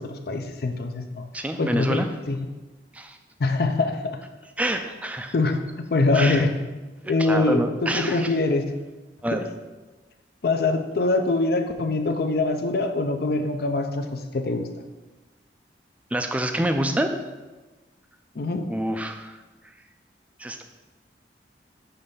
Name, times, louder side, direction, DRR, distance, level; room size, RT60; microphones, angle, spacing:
voice 1, 0.0-1.2 1.6-2.4 3.4-4.2 5.3-5.6 5.9-6.6 7.1-8.6 9.3-9.4 10.4-14.7 18.4-18.7, left 3 dB, 60° left, 7 dB, 0.5 m, -24 dB
voice 2, 1.3-2.1 2.9-3.2 4.6-5.3 6.1-6.4 7.1-8.3 9.2-9.4 16.1-17.1 18.7-19.4 20.4-20.6, right 1 dB, 10° right, 7 dB, 0.4 m, -27 dB
6.7 x 3.3 x 5.5 m, 1.2 s
head